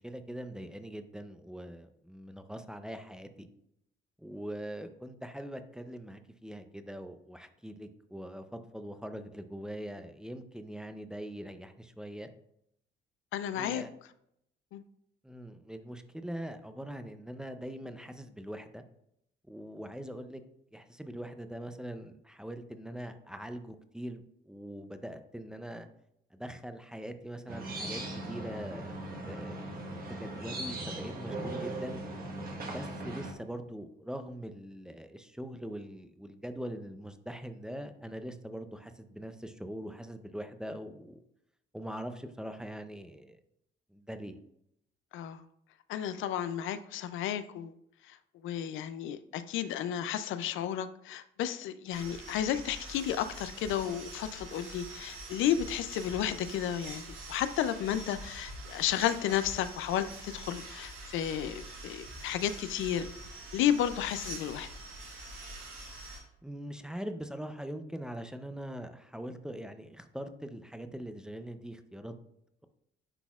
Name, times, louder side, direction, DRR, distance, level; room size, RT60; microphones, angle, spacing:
voice 1, 0.0-3.5 4.2-12.3 13.5-13.9 15.2-18.8 19.5-20.4 20.7-25.9 26.3-28.0 28.3-28.9 29.3-29.6 30.1-32.0 32.6-41.2 41.7-43.4 43.9-44.4 66.4-72.1, equal, 5° right, 8 dB, 0.5 m, -42 dB
voice 2, 13.3-13.8 14.7-14.8 45.1-45.4 45.9-47.7 48.1-48.2 48.4-57.0 57.3-63.1 63.5-64.7, left 10 dB, 80° left, 12 dB, 0.4 m, -32 dB
sound 1, 27.5-33.3, right 2 dB, 50° right, 1.3 m, -39 dB
sound 2, 51.9-66.2, right 2 dB, 90° right, 2.2 m, -45 dB
9.8 x 4.1 x 2.4 m, 0.75 s
cardioid pair, 90°, 20 cm